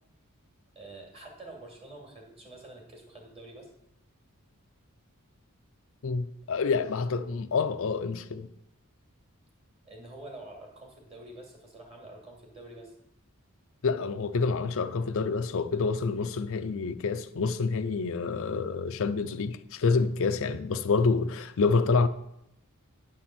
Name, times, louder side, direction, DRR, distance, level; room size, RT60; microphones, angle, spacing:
voice 1, 0.7-3.7 9.8-12.9, right 2 dB, 30° right, 2.3 m, -47 dB
voice 2, 6.0-8.5 13.8-22.1, left 4 dB, 65° left, 0.5 m, -27 dB
9.9 x 4.3 x 7.5 m
head